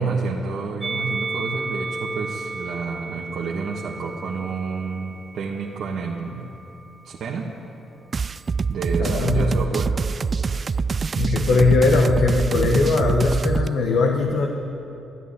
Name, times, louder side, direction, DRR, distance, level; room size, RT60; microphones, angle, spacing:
voice 1, 0.0-6.5 7.0-7.5 8.7-10.0 11.3-11.7, right 5 dB, 65° right, -3 dB, 1.4 m, -29 dB
Musical instrument, 0.8-7.2 8.1-9.1, right 3 dB, 20° right, 0.9 m, -34 dB
sound 1, 8.1-13.7, right 5 dB, 35° right, 0.3 m, -24 dB
voice 2, 9.0-9.6 11.2-14.5, left 3 dB, 75° left, 2 dB, 1.2 m, -20 dB
13.0 x 11.0 x 9.9 m, 2.8 s
cardioid pair, 90°, 0 cm